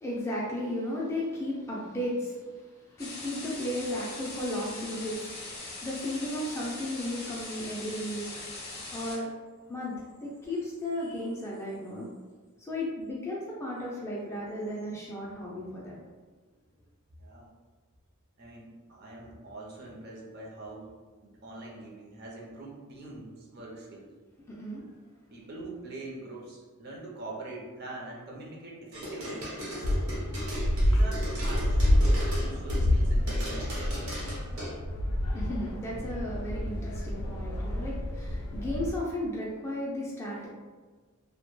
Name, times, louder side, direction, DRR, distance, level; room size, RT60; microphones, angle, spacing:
voice 1, 0.0-8.3 8.6-9.3 9.7-9.9 10.2-12.1 12.6-16.0 24.5-24.8 35.3-40.5, left 1 dB, 10° left, -5 dB, 0.3 m, -35 dB
sound 1, 3.0-9.2, left 2 dB, 45° left, 0.6 m, -41 dB
voice 2, 17.2-17.5 18.4-20.9 21.2-24.1 25.3-29.5 30.8-33.8, right 2 dB, 45° right, -3 dB, 0.5 m, -43 dB
sound 2, 28.9-33.0 33.3-34.7, equal, 70° right, 1.0 m, -38 dB
sound 3, 29.8-38.9, left 1 dB, 85° left, 0.4 m, -28 dB
2.1 x 2.1 x 3.0 m, 1.4 s
head